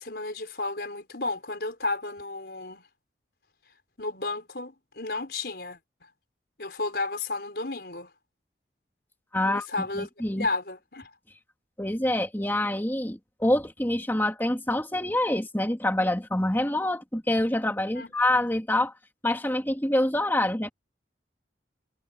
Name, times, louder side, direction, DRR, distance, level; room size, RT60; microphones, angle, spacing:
voice 1, 0.0-2.8 4.0-5.8 6.6-8.1 9.4-10.1 10.4-11.1 18.0-18.1, left 3 dB, 65° left, 4.7 m, -32 dB
voice 2, 9.3-9.7 10.0-10.4 11.8-18.9 19.2-20.7, left 1 dB, 10° left, 2.5 m, -26 dB
head